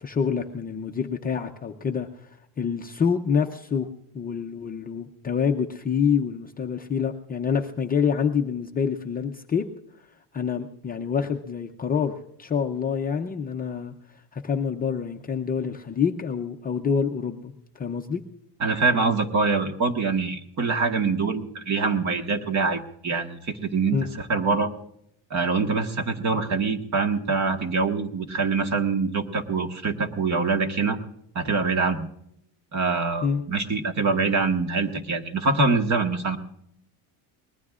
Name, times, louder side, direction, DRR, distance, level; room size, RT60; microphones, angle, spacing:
voice 1, 0.0-3.9 4.1-9.7 10.3-13.9 14.3-18.2 23.9-24.1 33.2-33.4, left 6 dB, 20° left, 2 dB, 0.6 m, -27 dB
voice 2, 18.6-24.7 25.3-31.0 31.3-32.1 32.7-36.4, right 4 dB, 35° right, 6 dB, 1.6 m, -24 dB
24.0 x 20.0 x 2.4 m, 0.73 s
cardioid pair, 160°, 47 cm